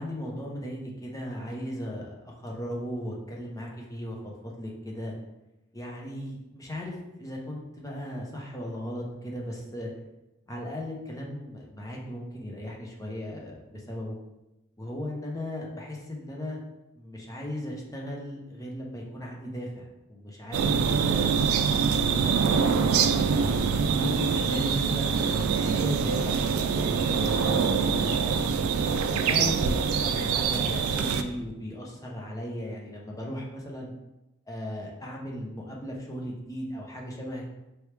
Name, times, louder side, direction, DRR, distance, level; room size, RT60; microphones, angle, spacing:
voice 1, 0.0-4.2 4.4-5.2 5.7-9.9 10.5-14.2 14.8-16.6 17.0-21.3 21.9-22.8 23.3-25.1 25.5-28.6 29.1-33.9 34.5-37.5, equal, 15° left, -2 dB, 0.7 m, -37 dB
sound 1, 20.5-31.2, right 6 dB, 90° right, 0.3 m, -25 dB
4.5 x 3.0 x 3.4 m, 0.96 s
head